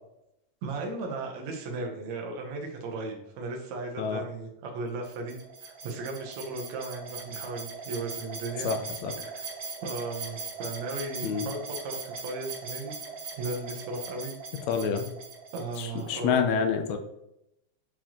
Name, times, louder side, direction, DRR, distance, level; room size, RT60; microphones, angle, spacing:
voice 1, 0.6-8.7 9.2-9.4 9.8-12.9 13.4-14.4 15.5-16.4, right 3 dB, 70° right, 1 dB, 2.3 m, -36 dB
sound 1, 5.0-16.1, right 5 dB, 55° right, 1.4 m, -40 dB
voice 2, 8.6-9.1 11.2-11.5 14.7-15.1 15.8-17.0, left 6 dB, 75° left, 6 dB, 1.9 m, -28 dB
7.4 x 4.5 x 3.0 m, 0.82 s
omnidirectional pair, 3.4 m